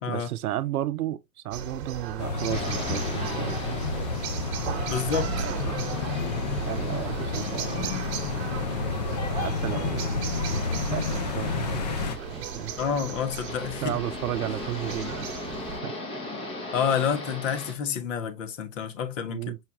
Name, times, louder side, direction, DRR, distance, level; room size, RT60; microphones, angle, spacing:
voice 1, 0.1-4.0 4.8-5.9 6.7-8.0 9.3-10.3 10.9-11.8 12.3-12.7 13.8-15.4 15.8-15.9 19.3-19.6, right 13 dB, 65° right, 0.6 m, -33 dB
sound 1, 1.5-15.8, right 6 dB, 40° right, 1.2 m, -36 dB
sound 2, 2.2-12.2, left 4 dB, 30° left, 0.4 m, -30 dB
sound 3, 2.5-17.7, left 2 dB, 10° left, 0.7 m, -39 dB
voice 2, 4.9-5.3 12.8-14.0 16.7-19.5, left 7 dB, 50° left, 1.0 m, -28 dB
5.6 x 2.3 x 2.9 m
hypercardioid pair, 135°, 48 cm